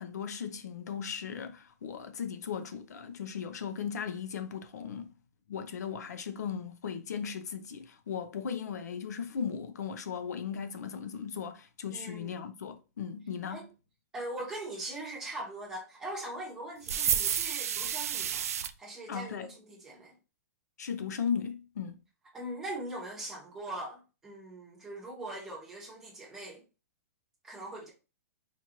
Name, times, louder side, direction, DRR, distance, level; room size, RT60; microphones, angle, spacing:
voice 1, 0.0-5.1 5.5-13.7 19.1-19.5 20.8-22.0, left 7 dB, 85° left, 0.6 m, -37 dB
voice 2, 11.9-12.5 13.5-13.6 14.1-18.5 18.8-20.2 22.3-26.6 27.4-27.9, right 1 dB, 5° right, 1.0 m, -41 dB
sound 1, 16.9-18.7, right 9 dB, 65° right, 0.4 m, -30 dB
4.5 x 2.5 x 2.9 m
hypercardioid pair, 175°, 9 cm